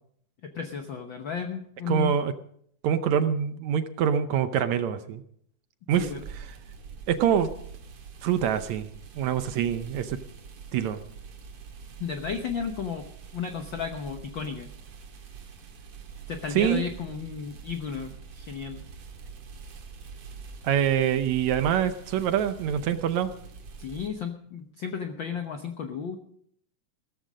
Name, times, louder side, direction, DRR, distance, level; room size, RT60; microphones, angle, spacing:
voice 1, 0.4-2.2 6.0-6.2 12.0-13.1 13.3-14.7 16.3-18.8 23.8-26.2, left 6 dB, 70° left, 5 dB, 1.1 m, -33 dB
voice 2, 1.9-2.3 2.8-5.2 5.9-6.5 7.1-7.5 8.2-8.9 9.2-10.2 10.7-11.0 16.5-16.8 20.6-23.3, right 9 dB, 75° right, 10 dB, 1.9 m, -25 dB
sound 1, 5.9-24.1, right 6 dB, 50° right, 2.4 m, -44 dB
15.5 x 14.0 x 5.1 m, 0.65 s
omnidirectional pair, 3.7 m